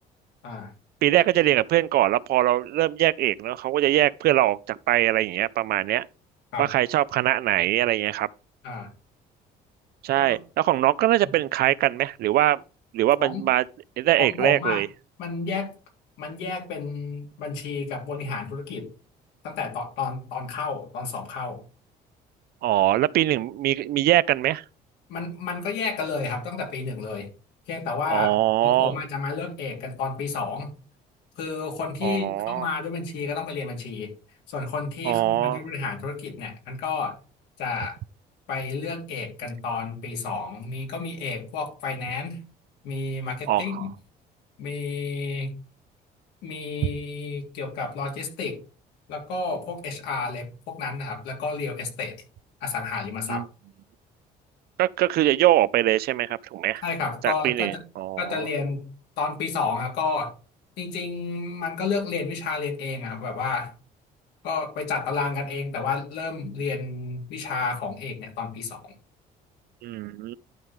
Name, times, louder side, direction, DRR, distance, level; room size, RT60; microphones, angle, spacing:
voice 1, 1.0-6.1 6.6-8.3 10.0-12.6 12.9-13.6 14.0-14.9 22.6-24.6 28.1-28.9 32.0-32.7 35.0-35.6 43.5-43.9 46.8-46.9 53.3-53.5 54.8-56.8 57.2-58.5 69.8-70.4, right 14 dB, 65° right, 0.5 m, -22 dB
voice 2, 14.2-14.8 15.2-15.7 16.2-18.9 19.4-21.6 25.1-27.3 27.7-28.4 28.6-30.7 31.4-34.1 34.5-37.2 37.6-38.0 38.5-42.4 42.8-43.9 44.6-45.6 46.4-48.6 49.1-52.2 52.6-53.4 56.8-57.8 58.2-58.8 59.2-60.3 60.8-63.7 64.4-68.9, left 4 dB, 85° left, 3.3 m, -31 dB
11.5 x 4.7 x 3.7 m
cardioid pair, 110°, 17 cm